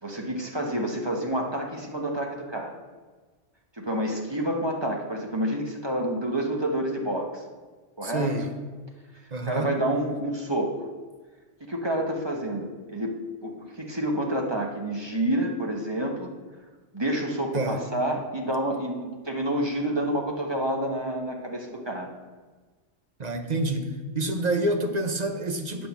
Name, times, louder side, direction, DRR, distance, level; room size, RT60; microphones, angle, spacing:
voice 1, 0.0-2.8 3.8-7.4 8.0-8.3 9.4-10.9 11.6-16.3 16.9-22.1, right 1 dB, 20° right, 0 dB, 1.2 m, -28 dB
voice 2, 8.0-8.5 9.3-9.7 17.5-17.8 23.2-23.9 24.1-25.9, right 2 dB, 40° right, 5 dB, 0.9 m, -27 dB
8.5 x 5.9 x 7.2 m, 1.3 s
omnidirectional pair, 1.2 m